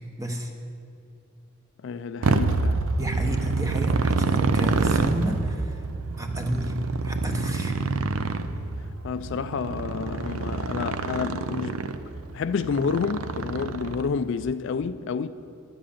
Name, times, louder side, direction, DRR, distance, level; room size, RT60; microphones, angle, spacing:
voice 1, 0.2-0.5 3.0-5.8 6.2-7.8, equal, 15° right, 1.0 m, -31 dB
voice 2, 1.8-2.8 9.0-11.8 12.3-15.3, left 5 dB, 60° left, 0.3 m, -29 dB
Motorcycle, 2.2-14.3, right 3 dB, 80° right, 0.6 m, -27 dB
10.5 x 7.5 x 8.6 m
head